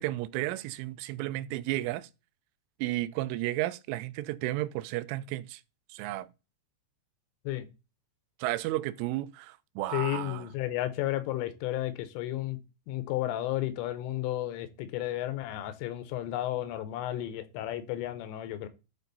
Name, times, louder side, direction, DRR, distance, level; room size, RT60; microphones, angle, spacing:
voice 1, 0.0-2.1 2.8-5.6 5.9-6.3 8.4-10.4, right 16 dB, 85° right, 3.1 m, -33 dB
voice 2, 9.9-12.6 12.9-18.7, left 14 dB, 90° left, 3.5 m, -33 dB
12.5 x 4.6 x 4.0 m
omnidirectional pair, 5.6 m